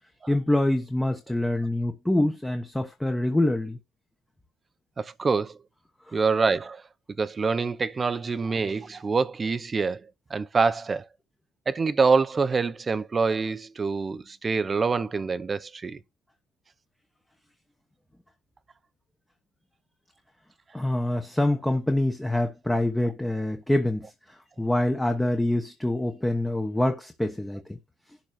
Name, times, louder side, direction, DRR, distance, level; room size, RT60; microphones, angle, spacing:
voice 1, 0.3-3.8 6.1-6.2 20.7-27.6, left 1 dB, 5° left, 1.1 m, -25 dB
voice 2, 5.0-5.6 6.1-6.8 7.2-10.0 10.3-11.0 11.7-16.0, right 4 dB, 20° right, 0.7 m, -25 dB
11.5 x 4.0 x 7.6 m
cardioid pair, 180°, 0 cm